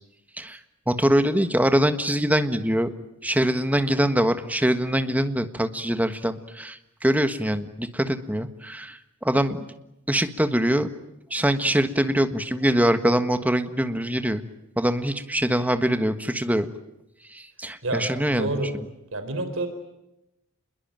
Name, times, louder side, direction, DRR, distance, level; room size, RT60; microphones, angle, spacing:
voice 1, 0.9-2.9 3.2-9.7 10.1-10.9 11.3-14.4 14.8-16.7 17.3-18.5, right 1 dB, 5° right, 9 dB, 1.5 m, -23 dB
voice 2, 18.3-18.7 19.1-19.7, right 2 dB, 65° right, 8 dB, 4.1 m, -28 dB
28.5 x 21.5 x 9.0 m, 0.90 s
head